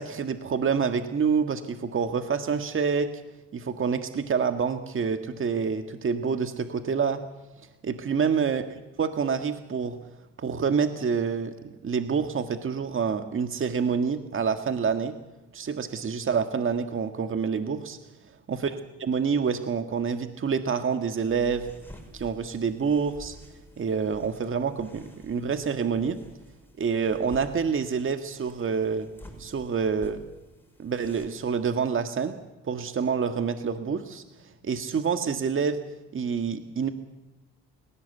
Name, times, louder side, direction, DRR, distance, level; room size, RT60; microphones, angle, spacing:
voice 1, 0.0-3.1 3.5-7.2 7.8-8.6 9.0-10.0 10.4-15.1 15.5-18.0 18.5-18.7 19.0-21.7 22.1-23.4 23.8-26.2 26.8-29.1 29.4-30.2 30.8-32.4 32.6-35.8 36.1-36.9, right 6 dB, 45° right, 8 dB, 1.8 m, -27 dB
sound 1, 21.3-31.4, left 1 dB, 5° left, 6.6 m, -50 dB
30.0 x 17.5 x 8.2 m, 1.1 s
cardioid pair, 90°, 30 cm